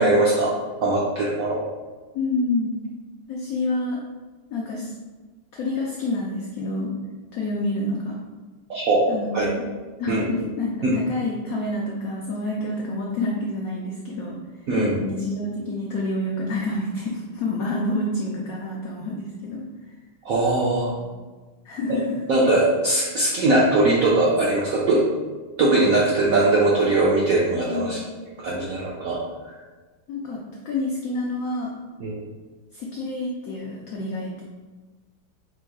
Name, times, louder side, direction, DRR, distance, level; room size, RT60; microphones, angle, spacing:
voice 1, 0.0-1.6 8.7-9.1 9.3-9.5 10.1-10.2 10.8-10.9 14.7-15.0 20.2-20.9 22.3-25.0 25.6-28.0 28.4-29.2 32.0-32.2, right 2 dB, 75° right, -4 dB, 0.7 m, -20 dB
voice 2, 2.1-2.7 3.3-4.0 4.5-4.9 5.5-6.9 7.3-8.2 9.1-9.6 10.0-14.4 15.0-19.6 21.6-22.2 27.5-28.1 30.1-31.7 32.7-34.4, left 2 dB, 85° left, -2 dB, 0.7 m, -28 dB
4.5 x 2.3 x 4.5 m, 1.3 s
omnidirectional pair, 2.2 m